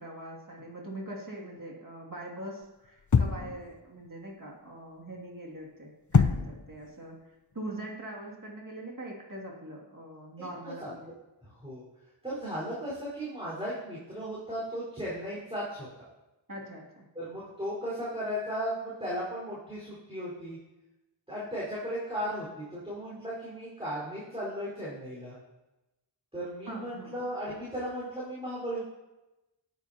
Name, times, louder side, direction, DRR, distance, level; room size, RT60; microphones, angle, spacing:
voice 1, 0.0-11.0 16.5-17.0 26.7-27.1, right 1 dB, 45° right, -3 dB, 2.6 m, -42 dB
sound 1, 3.1-3.6 6.1-6.7, left 5 dB, 40° left, 0.6 m, -23 dB
voice 2, 10.4-10.9 11.6-11.8 12.2-15.9 17.1-20.6 21.3-25.4 26.3-28.8, equal, 10° right, -9 dB, 4.7 m, -36 dB
18.5 x 9.1 x 2.9 m, 1.0 s
wide cardioid pair, 50°, 47 cm